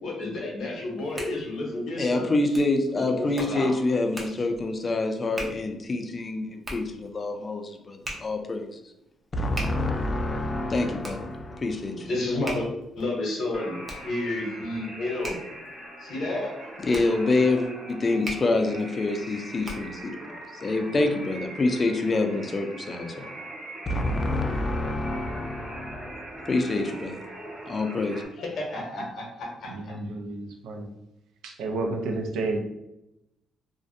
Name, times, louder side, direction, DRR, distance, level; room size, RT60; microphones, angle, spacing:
voice 1, 0.0-2.3 2.9-3.7 11.9-12.7 13.0-15.4 16.0-16.7 28.4-29.9, left 2 dB, 65° left, 0 dB, 0.8 m, -31 dB
Hands, 0.7-20.1, right 1 dB, 25° right, 0.6 m, -42 dB
voice 2, 2.0-8.8 9.3-12.1 16.8-23.3 23.9-27.3 27.7-28.2, left 2 dB, 35° left, 5 dB, 0.4 m, -27 dB
sound 1, 13.5-28.3, right 1 dB, 45° right, 1.1 m, -42 dB
voice 3, 29.7-30.9 31.4-32.6, right 2 dB, 90° right, 3 dB, 0.4 m, -31 dB
2.4 x 2.1 x 2.6 m, 0.87 s
cardioid pair, 90°, 0 cm